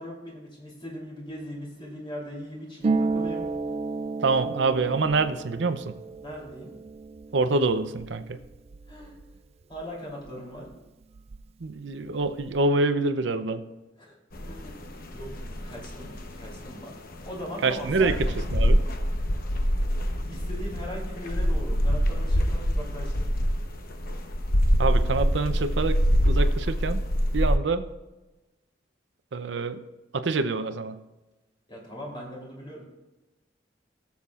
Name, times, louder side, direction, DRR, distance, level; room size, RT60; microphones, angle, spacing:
voice 1, 0.0-3.5 6.2-6.8 8.9-9.2 9.7-10.7 14.0-14.2 14.4-14.7 15.1-16.1 16.4-18.2 20.3-23.3 31.7-32.8, equal, 30° left, -2 dB, 3.2 m, -39 dB
Harp, 2.8-10.3 10.6-11.7 11.9-12.6, right 3 dB, 35° right, 0.3 m, -33 dB
voice 2, 4.2-5.9 7.3-8.4 11.6-13.7 17.6-18.2 18.5-18.8 24.8-26.0 26.2-27.0 27.3-27.8 29.3-29.8 30.1-31.0, right 3 dB, 75° right, 10 dB, 0.6 m, -26 dB
sound 1, 14.3-27.6, equal, 55° left, 0.9 m, -25 dB
16.5 x 7.2 x 2.4 m, 1.1 s
head